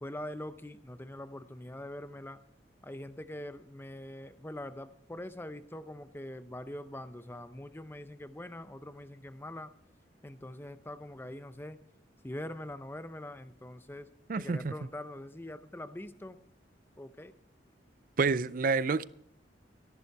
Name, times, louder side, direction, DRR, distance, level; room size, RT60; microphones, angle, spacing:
voice 1, 0.0-2.4 2.8-9.7 10.2-11.8 12.2-14.1 14.4-16.4 17.0-17.3, left 1 dB, 10° left, 0.6 m, -43 dB
voice 2, 14.3-14.7 18.2-19.0, right 4 dB, 45° right, 0.4 m, -28 dB
13.5 x 11.5 x 4.7 m
head